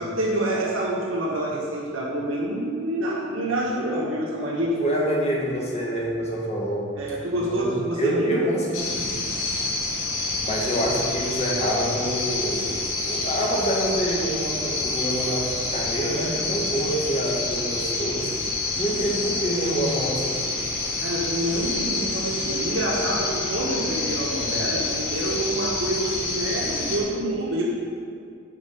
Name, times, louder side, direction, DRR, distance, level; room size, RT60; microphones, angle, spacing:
voice 1, 0.0-4.9 7.0-8.4 21.0-27.6, right 1 dB, 90° right, -4 dB, 1.6 m, -27 dB
voice 2, 4.8-6.9 7.3-9.2 10.4-18.3 18.7-20.5, right 1 dB, 35° left, -4 dB, 1.7 m, -27 dB
sound 1, 8.7-27.0, left 3 dB, 80° left, 2.0 m, -28 dB
9.5 x 5.0 x 5.1 m, 2.3 s
head